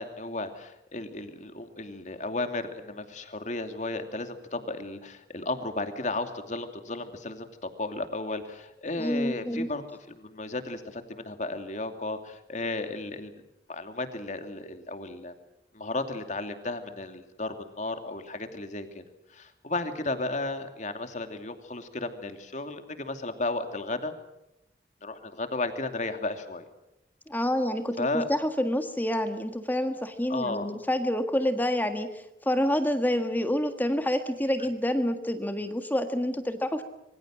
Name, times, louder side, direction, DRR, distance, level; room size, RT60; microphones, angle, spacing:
voice 1, 0.0-13.3 13.7-15.3 15.7-19.0 19.3-24.1 25.0-26.6 28.0-28.3 30.3-30.7, left 2 dB, 45° left, 7 dB, 2.7 m, -34 dB
voice 2, 9.0-9.7 27.3-36.8, left 1 dB, 10° left, 7 dB, 1.6 m, -28 dB
26.5 x 24.0 x 7.6 m, 0.86 s
head